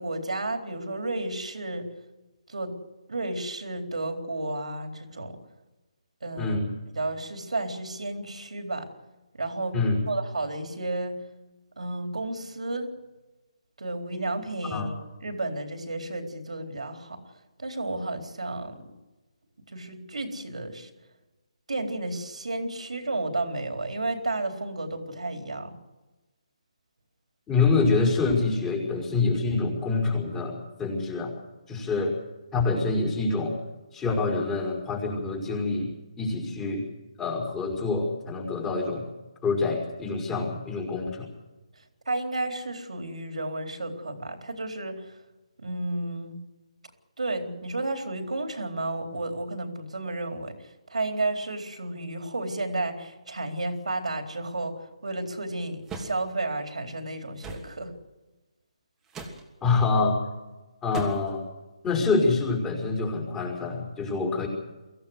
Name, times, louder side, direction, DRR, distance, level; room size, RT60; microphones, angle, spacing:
voice 1, 0.0-1.9 2.5-2.8 3.1-5.4 6.2-6.6 6.9-8.9 9.3-9.8 10.1-11.2 11.8-12.9 13.8-14.9 15.2-17.2 17.6-18.9 19.7-20.9 21.7-25.8 41.8-45.2 45.6-46.4 47.2-57.9, right 2 dB, 80° right, 5 dB, 4.0 m, -32 dB
voice 2, 6.4-6.7 9.7-10.0 14.7-14.9 27.5-31.3 31.7-32.1 32.5-33.5 33.9-35.9 36.2-36.8 37.2-39.0 39.4-41.3 59.6-60.2 60.8-61.4 61.8-64.5, left 3 dB, 10° left, -1 dB, 5.1 m, -26 dB
sound 1, 55.9-56.2 57.4-57.7 59.1-59.4 60.9-61.4, right 3 dB, 10° right, 2.9 m, -37 dB
23.5 x 16.0 x 8.1 m, 1.1 s
figure-of-eight pair, 150°, 4 cm